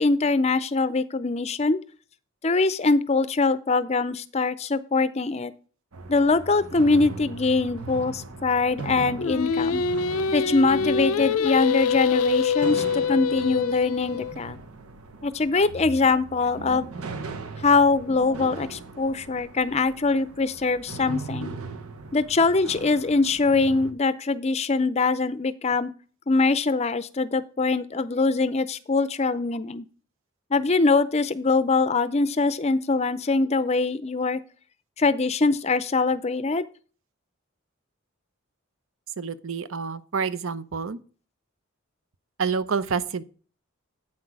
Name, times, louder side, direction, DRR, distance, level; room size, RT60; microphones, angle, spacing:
voice 1, 0.0-1.8 2.4-5.5 6.1-9.8 10.3-14.6 15.2-16.9 17.6-21.5 22.1-25.9 26.3-29.9 30.5-34.4 35.0-36.6, left 3 dB, 30° left, 0.5 m, -23 dB
sound 1, 5.9-23.9, right 3 dB, 85° right, 1.1 m, -39 dB
Singing, 9.2-14.3, left 6 dB, 80° left, 0.5 m, -25 dB
voice 2, 39.2-41.0 42.4-43.2, right 5 dB, 65° right, 0.7 m, -28 dB
8.7 x 5.9 x 4.7 m
head